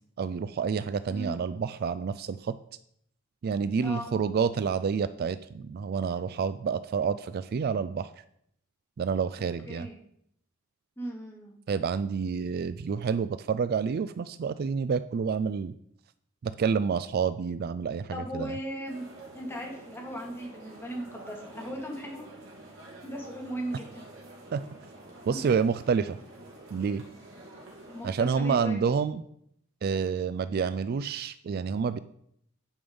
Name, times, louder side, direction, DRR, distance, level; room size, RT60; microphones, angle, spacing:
voice 1, 0.2-2.6 3.4-8.1 9.0-9.9 11.7-15.7 16.4-18.6 24.5-24.6 25.3-26.2 26.7-27.0 28.0-29.2 29.8-32.0, right 6 dB, 50° right, 14 dB, 0.3 m, -28 dB
voice 2, 1.1-1.4 3.8-4.1 9.7-10.0 11.0-11.5 18.1-19.1 19.3-22.2 23.0-24.0 27.9-28.8, equal, 10° left, -1 dB, 2.1 m, -37 dB
sound 1, 18.9-28.1, right 2 dB, 70° right, 2.9 m, -48 dB
10.5 x 5.3 x 5.3 m, 0.71 s
head